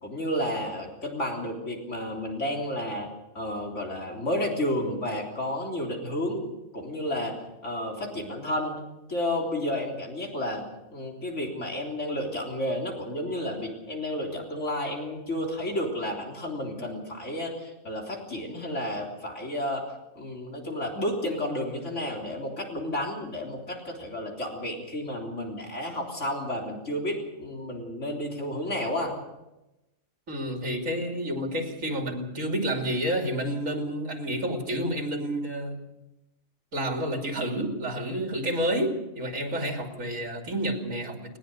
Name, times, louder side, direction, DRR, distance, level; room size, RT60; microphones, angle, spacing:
voice 1, 0.0-3.1 3.3-7.3 7.6-8.8 9.1-10.6 10.9-19.9 20.2-29.2, left 1 dB, 65° left, 0 dB, 3.9 m, -31 dB
voice 2, 30.3-35.8 36.7-41.4, right 1 dB, 80° right, 3 dB, 3.3 m, -29 dB
20.0 x 20.0 x 6.7 m, 0.96 s
omnidirectional pair, 1.4 m